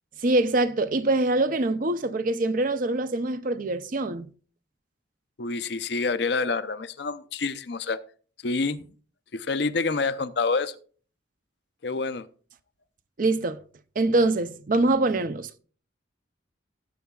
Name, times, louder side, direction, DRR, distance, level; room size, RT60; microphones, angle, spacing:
voice 1, 0.2-4.3 13.2-13.6 14.0-15.6, right 2 dB, 45° right, 0.5 m, -24 dB
voice 2, 5.4-8.0 8.4-8.9 9.3-10.8 11.8-12.3, left 4 dB, 60° left, 0.6 m, -27 dB
16.5 x 8.3 x 2.3 m
head